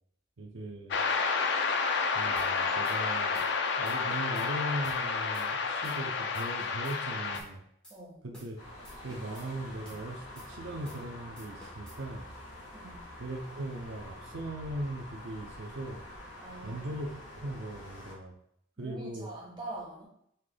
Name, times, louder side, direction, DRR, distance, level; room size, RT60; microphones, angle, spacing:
voice 1, 0.4-1.0 2.1-3.4 3.8-7.6 8.2-8.6 9.0-12.3 13.2-16.0 16.6-17.1 17.3-18.3 18.8-19.3, right 1 dB, 85° right, 1 dB, 0.6 m, -39 dB
sound 1, 0.9-7.4, left 4 dB, 60° left, 0.4 m, -30 dB
sound 2, 2.4-2.5 2.8-3.0 3.3-3.6 3.9-4.5 4.8-5.0 5.3-5.5 5.8-6.1 6.3-7.0 7.3-7.5 7.8-8.0 8.3-8.6 8.8-9.5 9.9-10.0 10.4-10.5 10.8-11.1 11.4-12.0, equal, 5° left, 0.9 m, -52 dB
voice 2, 7.9-8.2 12.7-13.1 16.4-16.9 18.8-20.1, right 2 dB, 25° right, -4 dB, 1.2 m, -44 dB
sound 3, 8.6-18.1, left 1 dB, 90° left, 1.4 m, -47 dB
5.5 x 3.3 x 2.2 m, 0.72 s
head